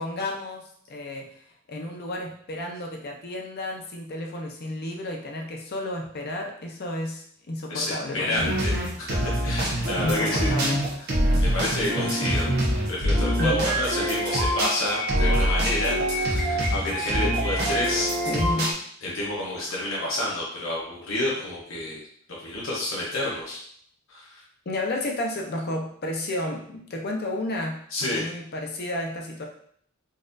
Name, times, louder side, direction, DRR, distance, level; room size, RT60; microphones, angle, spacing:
voice 1, 0.0-1.4 1.7-8.6 10.0-10.9 13.4-13.6 18.3-18.7 24.7-27.8 28.1-29.5, left 1 dB, 50° left, 1 dB, 0.6 m, -31 dB
voice 2, 7.7-10.5 11.4-12.5 12.9-18.1 19.0-22.0 22.4-23.6 24.1-24.4 27.9-28.2, left 1 dB, 70° left, -4 dB, 1.0 m, -29 dB
sound 1, 8.4-18.7, equal, 50° right, 0.9 m, -25 dB
4.0 x 2.5 x 2.6 m, 0.62 s
head